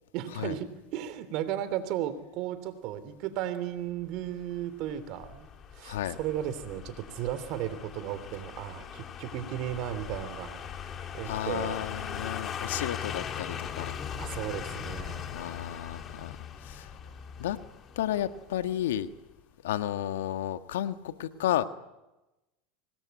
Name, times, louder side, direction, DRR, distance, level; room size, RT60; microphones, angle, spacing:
voice 1, 0.1-5.5 5.7-10.6 11.1-11.8 14.2-15.3, right 11 dB, 55° right, 13 dB, 3.2 m, -35 dB
sound 1, 4.2-19.1 19.4-19.5, left 8 dB, 35° left, 2.7 m, -40 dB
voice 2, 5.8-6.2 11.2-13.9 15.3-16.4 16.6-16.9 17.4-17.6 17.9-19.1 19.6-21.7, left 12 dB, 80° left, 10 dB, 1.5 m, -32 dB
25.5 x 20.0 x 9.5 m, 1.0 s
hypercardioid pair, 90°, 0 cm